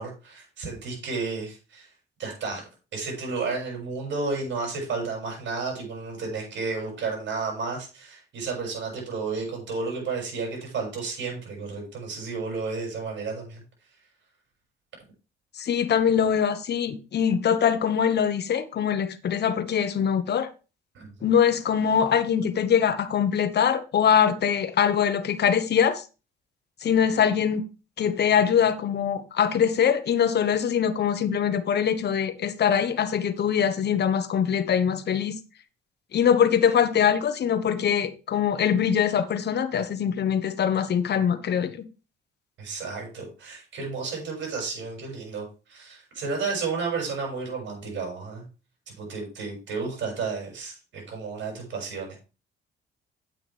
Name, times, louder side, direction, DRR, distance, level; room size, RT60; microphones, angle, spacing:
voice 1, 0.0-1.9 2.2-13.6 20.9-21.1 42.6-48.5 48.9-52.2, right 4 dB, 70° right, 6.4 m, -32 dB
voice 2, 15.6-20.5 21.2-26.0 26.8-27.6 28.0-35.4 36.1-41.7, left 8 dB, 55° left, 1.3 m, -23 dB
9.3 x 8.7 x 3.5 m
cardioid pair, 90°, 20 cm